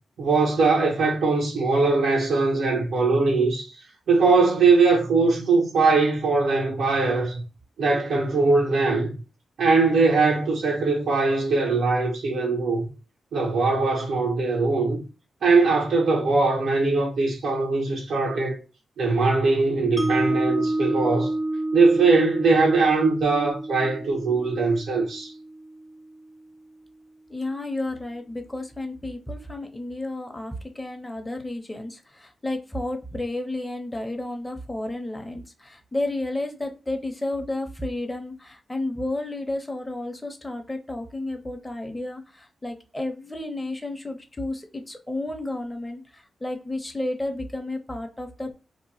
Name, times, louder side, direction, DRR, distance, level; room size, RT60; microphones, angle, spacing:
voice 1, 0.2-3.7 4.1-7.4 7.8-9.1 9.6-12.8 13.3-15.0 15.4-18.6 19.0-21.3 21.7-25.3, right 3 dB, 85° right, 0.8 m, -21 dB
Mallet percussion, 20.0-26.1, right 2 dB, 20° right, 0.5 m, -29 dB
voice 2, 27.3-48.5, left 2 dB, 15° left, 0.8 m, -32 dB
2.9 x 2.2 x 2.7 m
cardioid pair, 70°, 0 cm